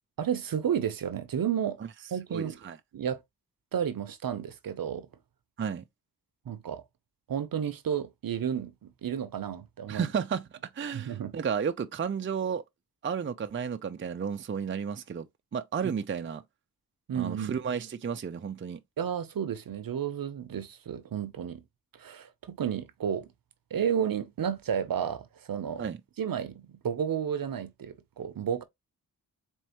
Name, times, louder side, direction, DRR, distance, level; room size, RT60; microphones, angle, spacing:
voice 1, 0.2-1.8 2.1-2.6 2.9-3.2 3.7-5.1 6.5-6.8 7.3-10.1 10.9-11.3 17.1-17.5 19.0-21.6 21.9-23.3 23.7-25.8 26.2-28.6, right 8 dB, 60° right, 0.8 m, -32 dB
voice 2, 2.3-2.8 5.6-5.8 9.9-10.5 10.7-12.6 13.0-15.3 15.5-16.4 17.1-18.8 25.8-26.0, right 7 dB, 30° right, 0.5 m, -32 dB
4.3 x 3.1 x 3.0 m
cardioid pair, 55°, 38 cm